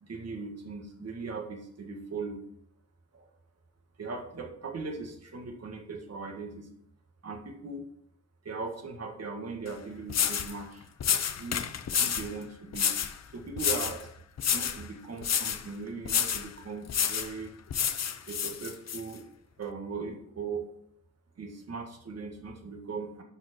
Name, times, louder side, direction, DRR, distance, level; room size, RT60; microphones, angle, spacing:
voice 1, 0.0-2.4 3.1-3.3 4.0-6.7 7.2-7.8 8.4-10.9 11.4-11.7 12.0-12.9 13.3-14.1 14.5-17.5 18.2-19.2 19.6-20.7 21.4-23.2, right 4 dB, 55° right, 2 dB, 1.8 m, -39 dB
sound 1, 9.7-9.8 10.1-10.5 11.0-12.3 12.7-13.2 13.6-14.0 14.4-14.8 15.2-15.6 16.1-16.5 16.9-17.3 17.7-19.0, left 8 dB, 60° left, 0.7 m, -29 dB
11.5 x 5.0 x 4.4 m, 0.70 s
wide cardioid pair, 155°, 31 cm